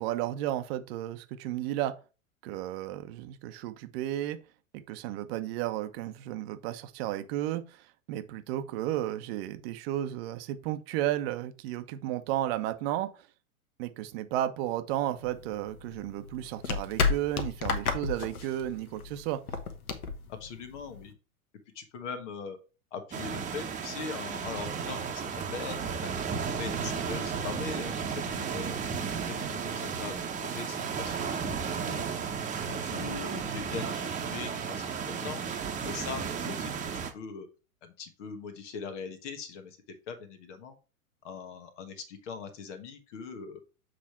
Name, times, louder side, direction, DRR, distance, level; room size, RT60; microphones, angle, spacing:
voice 1, 0.0-1.9 2.4-4.4 4.7-13.1 13.8-19.4, right 13 dB, 45° right, 1.0 m, -33 dB
sound 1, 15.2-21.1, left 5 dB, 80° left, 1.2 m, -33 dB
voice 2, 20.4-21.1 21.7-22.6 22.9-26.1 26.6-28.8 29.2-36.9 37.1-37.5 37.8-39.8 40.1-40.8 41.2-43.6, left 5 dB, 55° left, 1.4 m, -41 dB
sound 2, 23.1-37.1, right 6 dB, 20° right, 1.1 m, -34 dB
7.6 x 3.3 x 4.4 m
hypercardioid pair, 105°, 43 cm